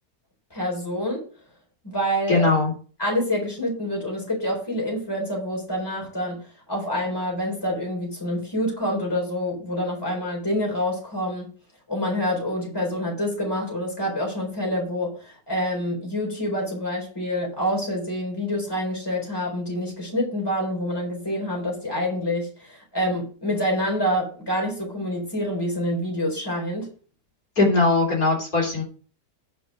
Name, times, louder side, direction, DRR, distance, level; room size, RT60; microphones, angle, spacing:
voice 1, 0.5-1.3 1.8-2.5 3.0-6.4 6.7-11.5 11.9-26.9, equal, 15° left, 0 dB, 4.0 m, -27 dB
voice 2, 2.3-2.7 27.6-28.8, left 3 dB, 60° left, -2 dB, 4.3 m, -20 dB
10.0 x 5.4 x 6.3 m, 0.40 s
omnidirectional pair, 1.8 m